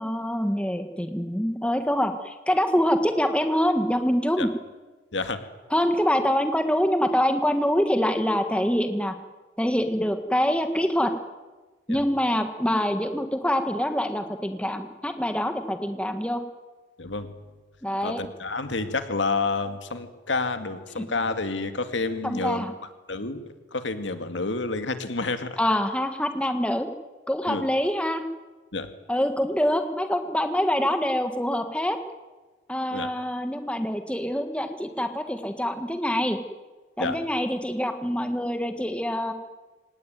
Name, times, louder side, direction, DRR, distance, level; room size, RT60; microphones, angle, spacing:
voice 1, 0.0-4.5 5.7-9.1 9.6-11.1 11.9-16.4 17.8-18.2 22.2-22.7 25.6-26.9 27.3-28.2 29.1-32.0 32.7-36.4 37.0-39.3, equal, 5° left, 7 dB, 1.6 m, -25 dB
voice 2, 5.1-5.4 11.9-12.0 17.0-17.3 18.0-22.7 23.1-25.6 27.5-27.7 28.7-28.9 32.9-33.1 37.0-37.2, left 3 dB, 80° left, 8 dB, 2.2 m, -29 dB
26.0 x 18.5 x 9.3 m, 1.2 s
head